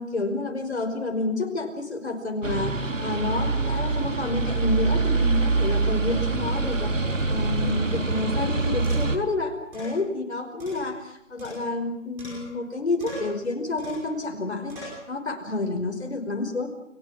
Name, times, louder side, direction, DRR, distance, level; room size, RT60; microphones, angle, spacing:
voice 1, 0.0-6.9 7.3-16.9, left 3 dB, 60° left, 6 dB, 5.5 m, -29 dB
sound 1, 2.4-9.2, right 3 dB, 90° right, 3.2 m, -25 dB
sound 2, 8.8-9.2 9.7-10.0 10.6-11.9 12.2-12.7 13.0-13.4 13.8-14.1 14.7-15.0, equal, 5° right, 5.2 m, -41 dB
30.0 x 19.0 x 7.3 m, 0.83 s
figure-of-eight pair, 175°, 37 cm